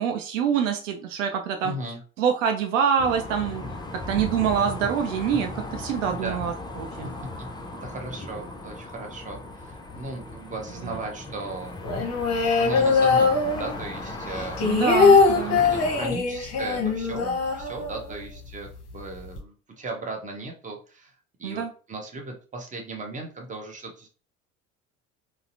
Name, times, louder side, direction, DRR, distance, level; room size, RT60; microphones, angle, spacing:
voice 1, 0.0-1.7 2.2-3.6 4.1-7.2 10.8-11.0 14.6-15.6 21.4-21.7, right 7 dB, 65° right, 4 dB, 0.5 m, -25 dB
voice 2, 1.6-2.0 6.1-6.4 7.0-7.5 7.8-11.8 12.5-14.6 15.6-21.1 21.4-21.6 21.9-24.1, right 2 dB, 20° right, 2 dB, 0.8 m, -36 dB
sound 1, 3.0-16.1, left 2 dB, 10° left, 0.5 m, -37 dB
sound 2, 11.8-14.0 14.3-18.2 18.5-18.6 18.9-19.4, left 4 dB, 40° left, 0.8 m, -21 dB
3.9 x 2.0 x 2.6 m, 0.38 s
figure-of-eight pair, 60°, 40 cm